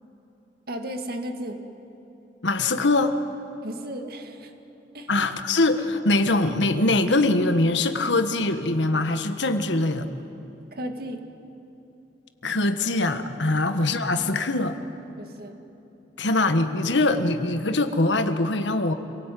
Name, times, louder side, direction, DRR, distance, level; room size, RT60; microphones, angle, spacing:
voice 1, 0.7-1.6 3.6-4.5 4.9-5.1 10.7-11.2 13.5-13.6 15.2-15.6, equal, 55° right, 5 dB, 2.2 m, -34 dB
voice 2, 2.4-3.2 5.1-10.1 12.4-14.8 16.2-18.9, left 2 dB, 85° left, 9 dB, 1.5 m, -23 dB
27.5 x 18.5 x 9.3 m, 3.0 s
head